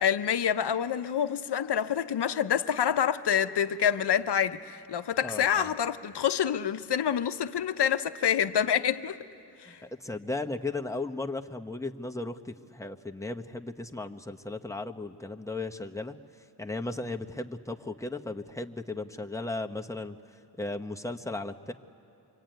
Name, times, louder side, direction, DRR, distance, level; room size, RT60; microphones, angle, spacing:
voice 1, 0.0-9.2 9.6-9.8, left 9 dB, 70° left, 0.8 m, -27 dB
voice 2, 5.2-5.8 9.7-16.2 16.6-20.2 20.6-21.7, left 2 dB, 5° left, 1.1 m, -36 dB
25.0 x 22.5 x 9.2 m
cardioid pair, 50°, 42 cm